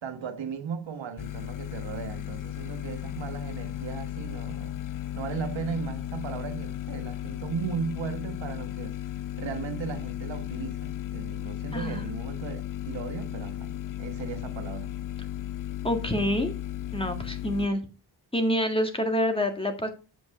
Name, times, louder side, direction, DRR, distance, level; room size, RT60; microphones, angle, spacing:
voice 1, 0.0-4.8 5.1-9.0 9.4-14.9, right 6 dB, 80° right, 1.4 m, -36 dB
sound 1, 1.2-17.7, left 13 dB, 45° left, 0.5 m, -35 dB
voice 2, 11.7-12.0 15.8-16.5 16.9-17.8 18.3-19.9, equal, 10° left, 1.8 m, -27 dB
7.5 x 5.3 x 4.7 m
cardioid pair, 65°, 44 cm